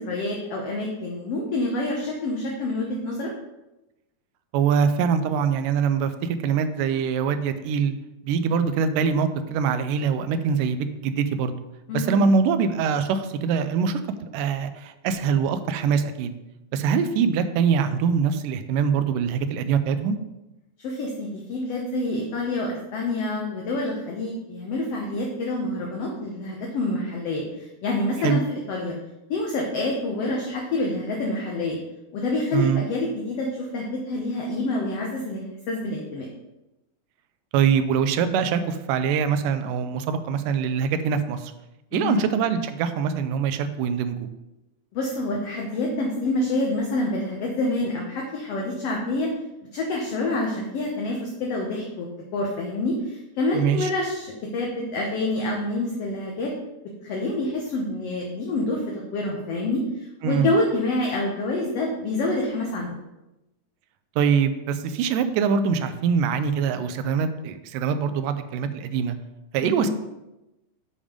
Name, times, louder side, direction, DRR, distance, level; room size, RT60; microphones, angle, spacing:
voice 1, 0.0-3.3 11.9-12.2 20.8-28.4 28.7-28.9 29.3-31.8 32.1-36.3 41.9-42.4 44.9-49.3 49.7-56.5 57.0-62.9 69.6-69.9, left 2 dB, 70° left, -1 dB, 1.6 m, -27 dB
voice 2, 4.5-7.9 8.2-11.6 11.9-16.3 16.7-20.2 28.2-28.4 32.5-32.8 37.5-41.5 41.9-44.3 53.5-53.9 60.2-60.5 64.2-69.2 69.5-69.9, right 6 dB, 85° right, 10 dB, 2.1 m, -23 dB
7.2 x 5.0 x 5.0 m, 0.96 s
omnidirectional pair, 3.8 m